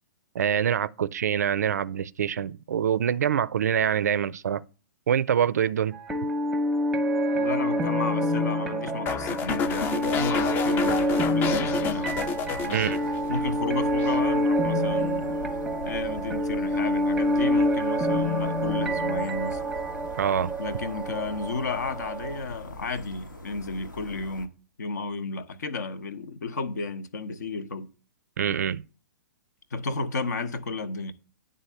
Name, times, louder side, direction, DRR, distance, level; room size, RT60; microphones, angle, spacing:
voice 1, 0.3-4.6 5.1-6.0 12.7-13.0 20.2-20.5 28.4-28.8, right 8 dB, 55° right, 0.4 m, -25 dB
sound 1, 5.9-22.4, equal, 5° right, 0.8 m, -27 dB
voice 2, 7.3-12.2 12.5-12.9 13.3-15.4 15.8-19.6 20.6-24.5 24.8-27.9 29.7-31.1, left 3 dB, 60° left, 0.9 m, -33 dB
sound 2, 9.1-13.5 13.8-14.2, left 7 dB, 20° left, 0.5 m, -30 dB
sound 3, 9.7-24.5, equal, 80° left, 1.2 m, -43 dB
9.7 x 3.8 x 6.8 m
figure-of-eight pair, 115°, 10 cm